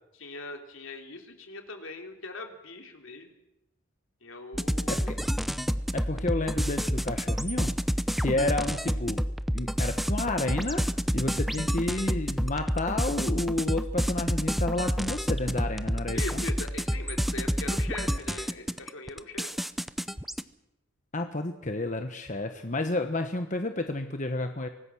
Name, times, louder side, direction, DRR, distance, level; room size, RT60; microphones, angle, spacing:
voice 1, 0.2-3.3 4.2-5.1 16.1-19.5, left 2 dB, 70° left, 4 dB, 3.4 m, -40 dB
sound 1, 4.5-20.4, equal, ahead, 0.7 m, -29 dB
voice 2, 5.9-7.7 8.2-9.2 9.5-10.8 11.1-16.4 21.1-24.7, left 2 dB, 35° left, 6 dB, 1.3 m, -30 dB
24.5 x 19.0 x 6.4 m, 0.88 s
head